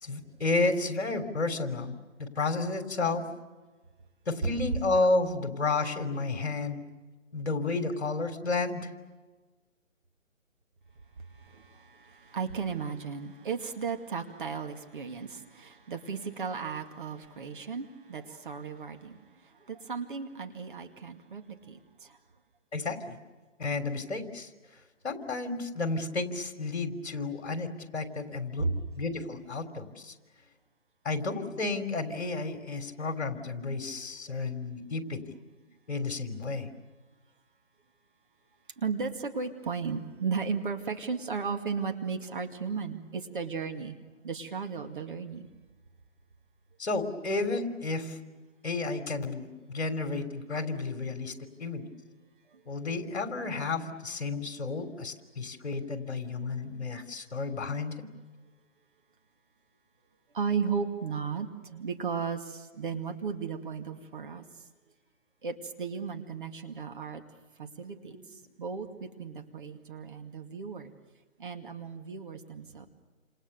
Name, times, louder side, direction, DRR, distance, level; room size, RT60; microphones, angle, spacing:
voice 1, 0.0-3.3 4.3-6.8 7.3-8.9 22.7-23.2 23.6-24.5 25.0-30.1 31.0-35.2 35.9-36.7 46.8-48.2 48.6-51.3 51.6-51.8 52.7-58.1 68.1-68.2, left 3 dB, 55° left, 7 dB, 3.4 m, -32 dB
voice 2, 11.2-22.2 28.6-28.9 38.8-44.0 44.2-45.5 52.5-52.6 60.3-64.7 65.4-67.2 67.6-70.9 71.4-72.9, right 5 dB, 40° right, 5 dB, 2.3 m, -35 dB
29.0 x 28.0 x 6.8 m, 1.3 s
figure-of-eight pair, 160°, 39 cm